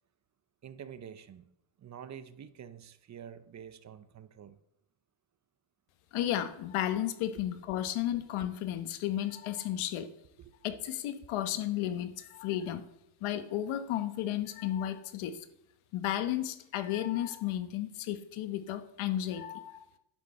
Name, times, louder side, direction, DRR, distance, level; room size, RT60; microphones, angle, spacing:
voice 1, 0.6-1.5 1.8-4.6 10.4-10.5, right 8 dB, 35° right, 0.6 m, -47 dB
voice 2, 6.1-10.1 10.6-12.9 13.2-15.4 15.9-19.8, left 12 dB, 85° left, 1.1 m, -33 dB
10.5 x 7.7 x 4.2 m
cardioid pair, 115°, 48 cm